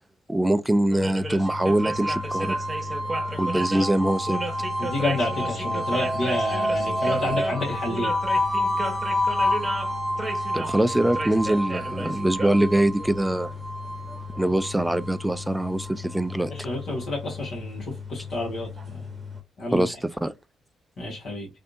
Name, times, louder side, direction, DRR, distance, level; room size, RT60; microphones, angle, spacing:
voice 1, 0.3-2.6 3.4-4.4 10.5-13.5 14.4-16.5 19.7-20.3, right 1 dB, 10° right, 0.4 m, -23 dB
sound 1, 0.9-19.4, left 1 dB, 25° right, 0.8 m, -34 dB
sound 2, 1.4-16.3, equal, 15° left, 1.0 m, -29 dB
voice 2, 4.8-8.1 16.5-19.0 19.6-19.9 21.0-21.5, left 2 dB, 65° left, 1.6 m, -29 dB
3.3 x 2.6 x 2.7 m
hypercardioid pair, 50°, 0 cm